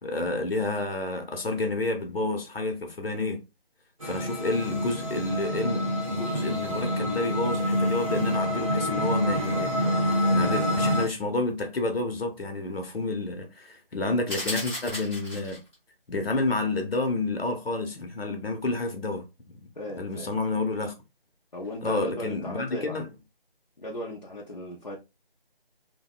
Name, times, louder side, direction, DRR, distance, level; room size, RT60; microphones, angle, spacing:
voice 1, 0.0-3.4 4.0-15.6 16.1-19.6 20.0-20.9 21.8-23.1, left 2 dB, 75° left, 0.8 m, -30 dB
sound 1, 4.0-11.1, equal, 35° right, 0.6 m, -27 dB
sound 2, 14.3-15.7, left 1 dB, 10° left, 0.7 m, -34 dB
voice 2, 19.8-20.3 21.5-23.0 23.8-25.0, equal, 45° left, 0.5 m, -36 dB
2.6 x 2.1 x 2.3 m
figure-of-eight pair, 165°, 30 cm